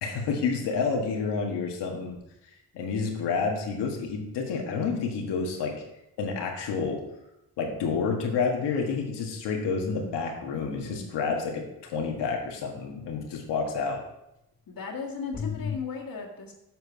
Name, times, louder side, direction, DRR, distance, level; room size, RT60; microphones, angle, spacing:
voice 1, 0.0-2.2 2.7-5.7 6.2-7.0 7.6-14.0, left 5 dB, 90° left, 1 dB, 1.5 m, -29 dB
voice 2, 14.7-16.5, left 5 dB, 60° left, -1 dB, 1.7 m, -36 dB
sound 1, 15.3-15.8, left 6 dB, 25° left, 0.6 m, -32 dB
7.6 x 4.6 x 5.7 m, 0.86 s
supercardioid pair, 60°, 40 cm